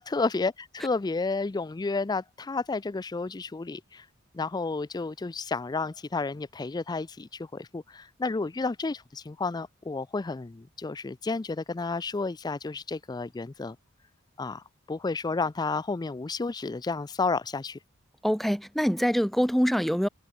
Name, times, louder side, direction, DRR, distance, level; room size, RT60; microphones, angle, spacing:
voice 1, 0.0-4.1 4.3-13.8 14.4-17.8, left 3 dB, 20° left, 0.4 m, -31 dB
voice 2, 18.2-20.1, equal, ahead, 1.4 m, -24 dB
head